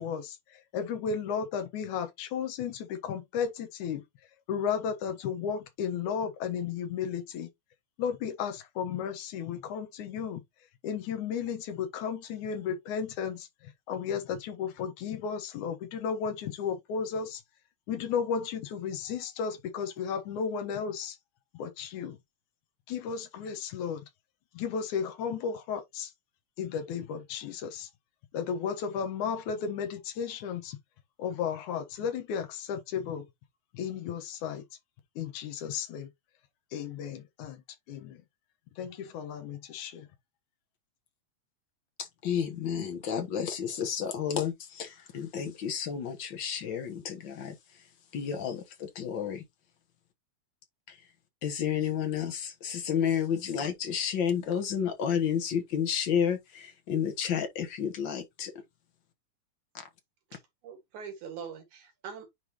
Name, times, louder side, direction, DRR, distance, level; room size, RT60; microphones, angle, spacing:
voice 1, 0.0-4.1 4.5-7.5 8.0-10.4 10.8-17.4 17.9-21.2 21.5-22.2 22.9-24.1 24.5-26.1 26.6-27.9 28.3-30.8 31.2-33.3 33.7-34.6 35.2-36.1 36.7-38.2 38.8-40.1, left 7 dB, 80° left, 2.6 m, -34 dB
voice 2, 42.0-47.9 48.1-49.4 50.9-51.0 51.4-58.5, left 8 dB, 55° left, 1.4 m, -31 dB
voice 3, 60.3-62.3, right 7 dB, 75° right, 3.3 m, -43 dB
9.9 x 3.5 x 3.0 m
omnidirectional pair, 3.4 m